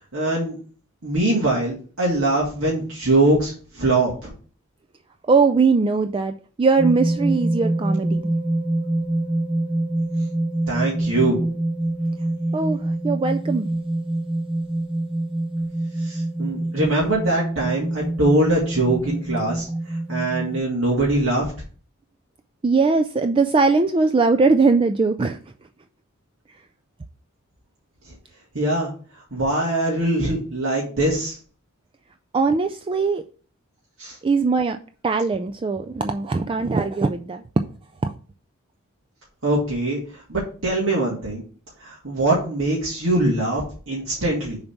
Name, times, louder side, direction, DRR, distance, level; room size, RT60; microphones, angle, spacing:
voice 1, 0.1-0.6 1.0-4.3 10.7-11.4 16.0-21.5 28.0-28.1 28.5-28.9 29.3-31.4 34.0-34.2 39.4-41.4 41.8-44.6, right 2 dB, 65° right, -5 dB, 2.2 m, -22 dB
voice 2, 5.3-8.3 12.5-13.7 22.6-25.4 32.3-33.2 34.2-34.8 35.0-37.4 38.0-38.1, right 4 dB, 25° right, 8 dB, 0.3 m, -20 dB
sound 1, 6.8-20.6, right 1 dB, 5° right, 1.8 m, -25 dB
6.9 x 4.1 x 5.8 m, 0.40 s
head